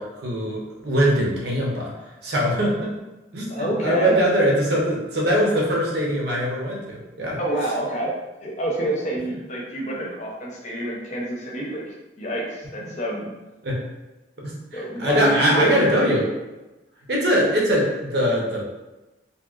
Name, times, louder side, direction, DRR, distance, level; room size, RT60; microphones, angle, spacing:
voice 1, 0.0-1.9 2.2-2.9 3.3-7.4 13.6-13.8 14.4-16.3 17.1-18.6, equal, 65° right, -3 dB, 0.8 m, -22 dB
voice 2, 3.5-4.1 7.4-8.1 8.4-13.3 14.7-15.9, right 1 dB, 40° left, -3 dB, 0.7 m, -27 dB
3.0 x 2.8 x 2.4 m, 1.1 s
head